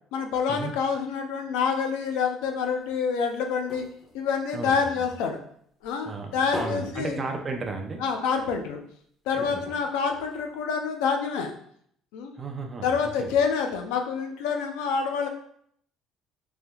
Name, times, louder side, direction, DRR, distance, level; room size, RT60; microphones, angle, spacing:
voice 1, 0.1-3.9 4.1-5.4 5.8-7.2 8.0-8.8 9.3-11.5 12.1-12.3 12.8-15.3, left 6 dB, 90° left, 5 dB, 0.4 m, -27 dB
sound 1, 2.8-5.4 5.8-8.1 8.4-8.5 8.8-8.9 9.4-10.9 11.5-11.6, left 1 dB, 35° left, 1.1 m, -41 dB
voice 2, 4.5-5.0 6.1-8.0 9.3-9.6 12.4-12.9 13.2-13.3, right 3 dB, 30° right, 2 dB, 0.5 m, -34 dB
3.3 x 2.7 x 2.2 m, 0.66 s
cardioid pair, 105°, 0 cm